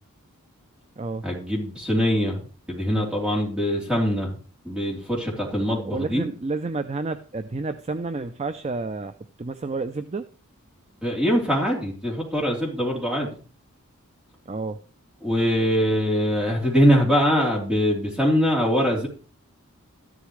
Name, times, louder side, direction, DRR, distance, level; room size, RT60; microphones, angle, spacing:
voice 1, 1.2-2.4 2.7-4.4 4.7-6.3 11.0-13.3 15.2-19.1, equal, 5° right, -3 dB, 3.5 m, -22 dB
voice 2, 5.7-10.3 14.5-14.8, right 3 dB, 30° right, 10 dB, 0.4 m, -30 dB
13.0 x 11.5 x 3.2 m, 0.40 s
head